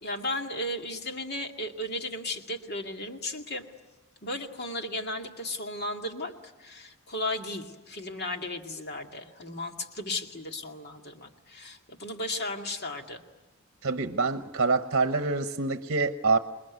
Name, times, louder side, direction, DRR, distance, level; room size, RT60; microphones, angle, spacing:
voice 1, 0.0-3.7 4.2-6.3 6.6-13.2, left 1 dB, 45° left, 4 dB, 2.2 m, -35 dB
voice 2, 13.8-16.4, right 3 dB, 55° right, 9 dB, 1.0 m, -26 dB
28.0 x 21.0 x 9.5 m, 1.2 s
head